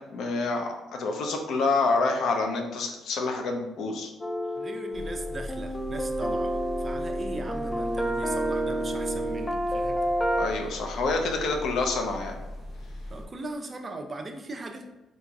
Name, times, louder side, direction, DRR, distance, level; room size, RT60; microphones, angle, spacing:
voice 1, 0.1-4.1 10.4-12.3, left 3 dB, 75° left, 3 dB, 0.6 m, -27 dB
sound 1, 4.2-10.5, right 1 dB, 20° left, 0.4 m, -29 dB
voice 2, 4.5-10.0 13.1-14.9, right 2 dB, 35° right, 3 dB, 0.6 m, -39 dB
sound 2, 4.9-13.3, left 1 dB, 40° left, 1.4 m, -39 dB
3.9 x 3.9 x 2.3 m, 1.1 s
cardioid pair, 90°, 0 cm